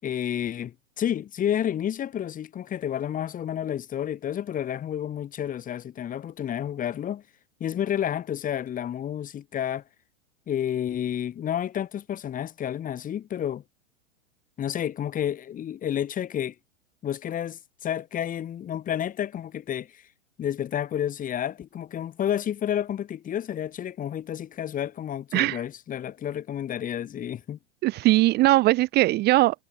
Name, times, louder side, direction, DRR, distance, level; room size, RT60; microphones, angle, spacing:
voice 1, 0.0-7.2 7.6-9.8 10.5-13.6 14.6-16.6 17.0-20.0 20.4-27.6, left 10 dB, 20° left, 7.0 m, -30 dB
voice 2, 27.8-29.6, right 18 dB, 25° right, 1.3 m, -20 dB
figure-of-eight pair, 105°, 36 cm